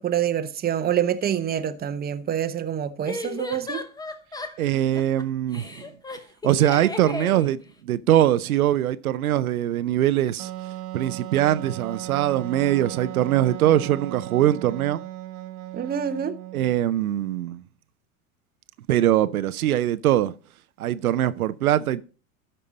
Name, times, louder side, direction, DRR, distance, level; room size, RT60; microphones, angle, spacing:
voice 1, 0.0-3.8 15.7-16.4, right 9 dB, 20° right, 0.8 m, -26 dB
sound 1, 0.7-0.8 3.1-5.2 5.5-7.5, left 2 dB, 10° left, 0.9 m, -34 dB
voice 2, 4.6-5.8 6.4-10.5 10.9-15.0 16.5-17.6 18.9-20.3 20.8-22.0, right 12 dB, 90° right, 0.6 m, -22 dB
Wind instrument woodwind instrument, 10.4-16.8, right 14 dB, 65° right, 1.2 m, -36 dB
13.0 x 5.5 x 4.1 m
hypercardioid pair, 90°, 42 cm